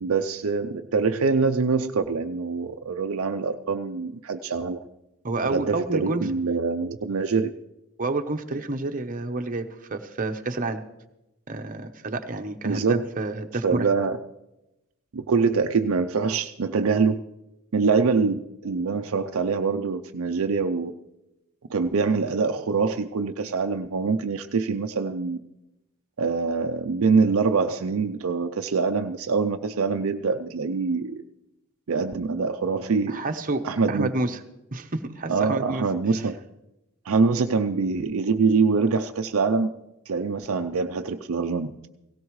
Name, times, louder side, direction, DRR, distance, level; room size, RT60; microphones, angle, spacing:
voice 1, 0.0-4.8 5.4-7.5 12.6-13.0 13.6-14.2 15.1-17.2 17.7-20.9 21.7-25.4 26.2-31.2 31.9-33.2 33.6-34.1 35.3-36.4 37.0-39.7 40.1-41.9, right 4 dB, 65° right, 6 dB, 0.5 m, -24 dB
voice 2, 5.2-6.2 8.0-10.8 11.5-13.9 33.1-34.4 34.7-35.9, right 2 dB, 40° right, 5 dB, 0.9 m, -29 dB
17.5 x 17.0 x 3.2 m, 0.92 s
head